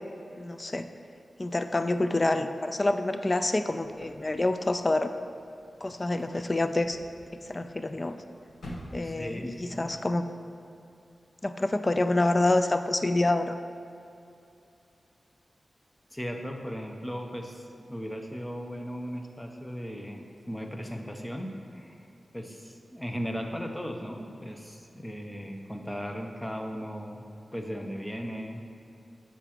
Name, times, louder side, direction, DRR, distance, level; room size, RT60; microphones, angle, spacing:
voice 1, 0.4-0.9 1.4-5.1 5.8-7.0 7.5-8.2 8.9-10.3 11.4-13.6, left 2 dB, 35° left, 9 dB, 0.3 m, -27 dB
sound 1, 3.8-9.7, equal, 80° left, 0.9 m, -48 dB
voice 2, 9.0-9.9 16.1-22.1 22.3-27.2 27.5-28.6, equal, 15° left, 3 dB, 0.7 m, -37 dB
7.1 x 6.7 x 2.9 m, 2.6 s
cardioid pair, 55°, 0 cm